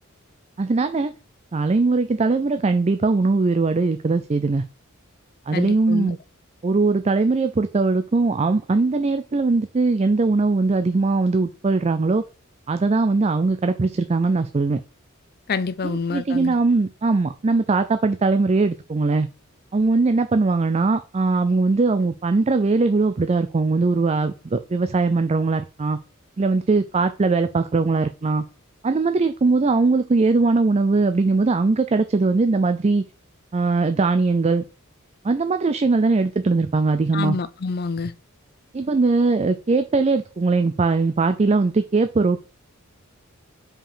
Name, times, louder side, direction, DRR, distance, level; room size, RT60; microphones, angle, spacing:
voice 1, 0.6-1.1 1.5-4.6 5.5-6.2 6.6-12.2 12.7-14.8 15.8-19.3 19.7-26.0 26.4-28.4 28.8-33.0 33.5-34.6 35.2-37.4 38.7-42.5, right 3 dB, 30° right, 0.4 m, -20 dB
voice 2, 5.5-6.2 15.5-16.5 37.1-38.1, left 4 dB, 45° left, 0.5 m, -27 dB
5.1 x 5.1 x 5.5 m
head